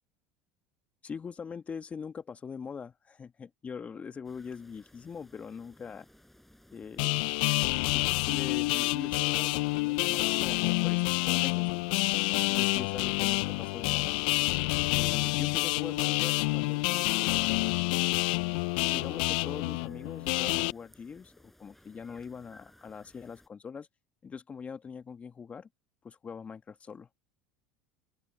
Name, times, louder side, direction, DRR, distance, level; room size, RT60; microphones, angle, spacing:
voice 1, 1.0-6.1 6.7-7.2 7.9-11.8 12.3-14.1 14.9-17.4 18.8-23.9 24.2-25.7 26.0-27.1, left 6 dB, 30° left, 1.3 m, -42 dB
sound 1, 4.2-23.5, left 1 dB, 5° left, 7.0 m, -60 dB
sound 2, 7.0-20.7, left 25 dB, 70° left, 0.4 m, -28 dB
open air
hypercardioid pair, 80°, 5 cm